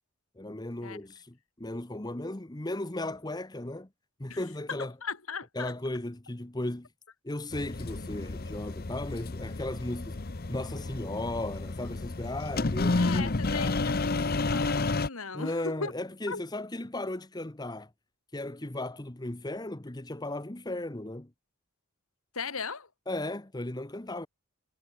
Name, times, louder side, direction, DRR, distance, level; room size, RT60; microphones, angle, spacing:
voice 1, 0.4-3.9 4.2-4.9 5.5-6.9 7.2-10.2 10.5-13.9 15.3-17.9 18.3-21.3 23.1-24.3, left 1 dB, 20° left, 1.0 m, -36 dB
voice 2, 5.0-5.7 13.0-15.9 16.3-16.4 22.3-22.9, left 5 dB, 70° left, 2.2 m, -37 dB
sound 1, 7.5-15.1, left 3 dB, 45° left, 0.8 m, -31 dB
head